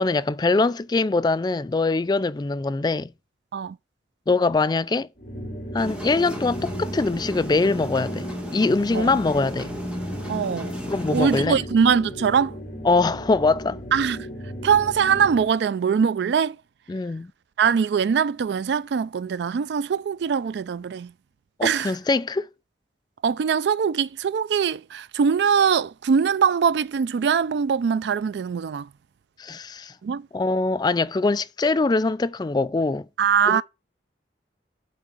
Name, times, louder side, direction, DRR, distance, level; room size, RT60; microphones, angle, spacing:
voice 1, 0.0-3.1 4.3-5.1 5.7-8.3 8.5-9.7 10.9-11.6 12.8-13.8 16.9-17.3 21.6-22.5 29.4-29.9 30.3-33.1 33.5-33.6, left 3 dB, 25° left, 0.3 m, -23 dB
sound 1, 5.2-15.6, equal, 45° left, 3.5 m, -36 dB
sound 2, 5.8-11.5, equal, 5° right, 1.5 m, -34 dB
voice 2, 10.3-10.7 11.1-12.6 13.9-14.3 14.6-16.6 17.6-21.1 21.6-21.9 23.2-28.9 30.0-30.3 33.2-33.6, right 6 dB, 65° right, 0.3 m, -22 dB
8.6 x 3.5 x 6.7 m
head